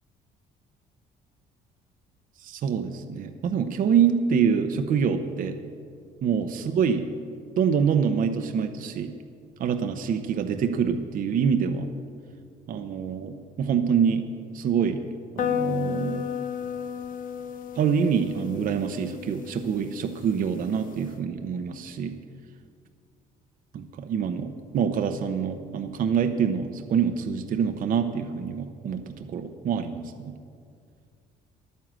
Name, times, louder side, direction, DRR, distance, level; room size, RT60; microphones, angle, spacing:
voice 1, 2.4-5.6 6.2-7.1 7.6-9.1 9.6-11.9 12.7-14.3 14.5-15.0 15.3-16.3 17.8-22.2 23.7-30.3, right 7 dB, 55° right, 7 dB, 0.8 m, -26 dB
sound 1, 15.4-21.1, left 9 dB, 55° left, 0.7 m, -33 dB
11.0 x 9.6 x 7.5 m, 2.2 s
cardioid pair, 110°, 17 cm